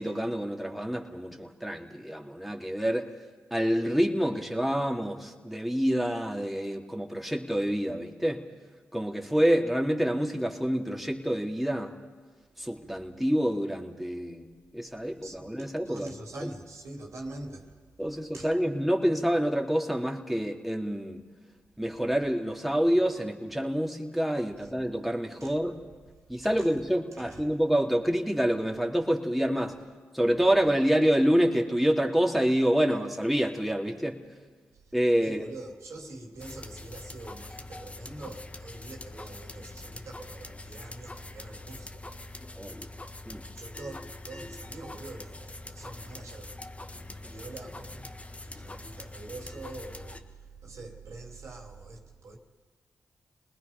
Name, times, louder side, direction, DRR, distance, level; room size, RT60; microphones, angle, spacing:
voice 1, 0.0-3.1 3.5-8.4 8.9-11.9 12.6-14.4 14.7-16.1 16.4-16.5 18.0-21.2 21.8-25.8 26.3-29.8 30.1-34.2 34.9-35.4 42.6-42.9 43.3-43.4, equal, ahead, 2.7 m, -27 dB
voice 2, 15.2-17.7 18.1-18.5 25.4-25.6 26.4-26.7 27.1-27.4 35.2-42.0 42.3-42.6 43.6-46.6 46.9-48.1 48.4-50.4 50.6-52.4, right 2 dB, 70° right, 2.9 m, -44 dB
sound 1, 36.4-50.2, left 2 dB, 25° left, 1.5 m, -44 dB
28.5 x 20.0 x 5.3 m
supercardioid pair, 40°, 5 cm